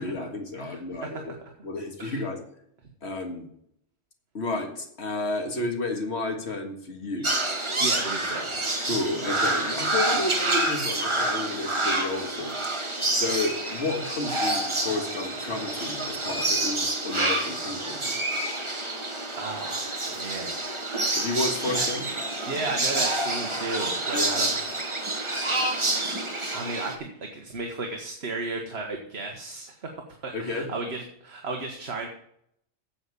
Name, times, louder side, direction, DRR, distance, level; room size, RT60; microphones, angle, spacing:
voice 1, 0.0-1.3 1.6-2.4 3.0-3.5 4.3-7.3 8.8-12.6 12.8-18.2 21.1-22.1 24.1-24.6 30.3-30.7, left 2 dB, 65° left, 3 dB, 2.0 m, -31 dB
voice 2, 0.6-1.4 2.0-2.2 7.8-8.5 19.4-20.6 21.7-21.9 22.5-24.8 25.1-25.3 26.5-29.9 30.2-32.1, right 3 dB, 60° right, 3 dB, 1.5 m, -34 dB
sound 1, 7.2-26.9, right 2 dB, 25° right, 1.4 m, -28 dB
9.0 x 7.3 x 6.8 m, 0.72 s
omnidirectional pair, 1.2 m